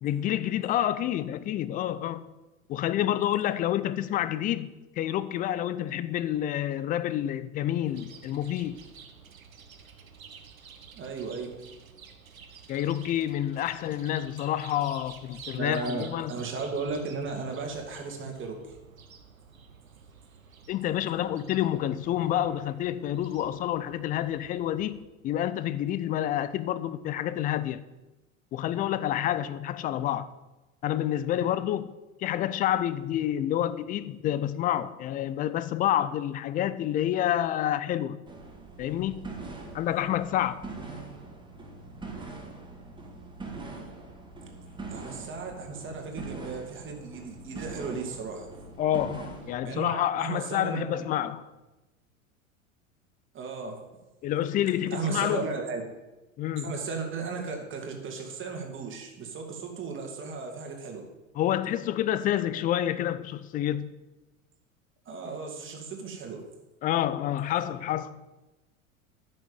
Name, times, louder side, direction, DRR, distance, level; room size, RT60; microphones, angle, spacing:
voice 1, 0.0-2.3 2.7-4.7 5.0-8.8 12.7-16.3 20.7-27.8 28.5-30.3 30.8-31.9 32.2-38.2 38.8-39.3 39.7-40.7 48.8-51.5 54.2-55.5 56.4-56.7 61.4-63.9 66.8-68.2, left 11 dB, 20° left, 0.4 m, -28 dB
Chirp tweet, 7.9-25.0, right 6 dB, 80° right, 1.2 m, -51 dB
voice 2, 10.9-11.5 15.5-18.8 44.9-48.5 49.6-51.0 53.3-53.8 54.9-55.8 56.6-61.0 65.1-66.4, right 4 dB, 30° right, 2.5 m, -35 dB
sound 1, 38.3-49.5, right 3 dB, 10° right, 2.2 m, -42 dB
10.5 x 6.5 x 7.8 m
figure-of-eight pair, 80°, 41 cm